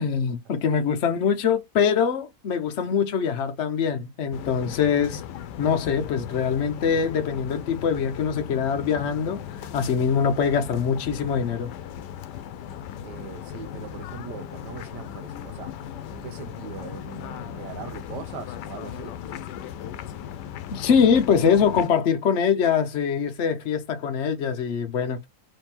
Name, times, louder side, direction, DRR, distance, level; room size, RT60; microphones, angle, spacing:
voice 1, 0.0-5.2 5.6-9.4 9.7-11.7 20.7-25.3, left 7 dB, 60° left, 0.8 m, -23 dB
sound 1, 4.3-21.9, left 9 dB, 90° left, 1.2 m, -37 dB
voice 2, 13.0-15.7 16.1-19.1, right 7 dB, 90° right, 1.5 m, -40 dB
3.5 x 3.2 x 4.4 m
omnidirectional pair, 1.8 m